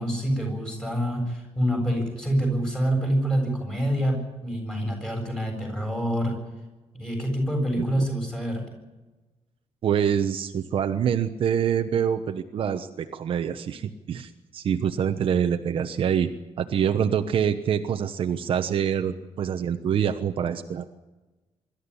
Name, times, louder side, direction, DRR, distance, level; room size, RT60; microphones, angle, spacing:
voice 1, 0.0-6.4 6.9-8.6, equal, 5° left, 2 dB, 7.6 m, -26 dB
voice 2, 9.8-16.3 16.6-20.9, right 8 dB, 50° right, 7 dB, 1.1 m, -25 dB
24.5 x 13.5 x 9.9 m, 1.1 s
cardioid pair, 170°, 11 cm